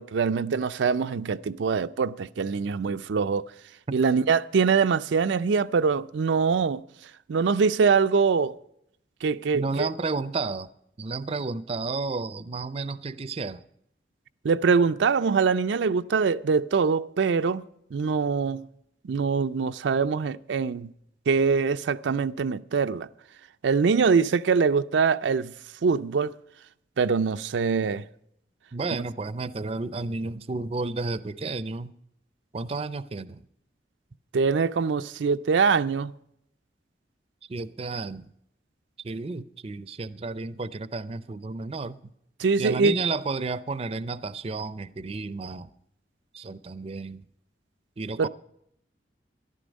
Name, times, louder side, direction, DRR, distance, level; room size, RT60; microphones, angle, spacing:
voice 1, 0.0-3.5 3.9-6.8 7.3-8.5 9.2-9.9 14.4-17.6 17.9-18.7 19.0-20.9 21.3-23.1 23.6-25.5 25.8-26.3 27.0-28.0 34.3-36.1 42.4-43.0 48.2-48.3, right 5 dB, 90° right, 0.4 m, -23 dB
voice 2, 9.5-10.7 11.0-13.6 28.7-31.9 32.5-33.4 37.5-38.3 39.0-42.1 42.6-45.7 46.3-47.2 48.0-48.3, right 3 dB, 35° right, 0.4 m, -32 dB
13.5 x 11.5 x 5.2 m
head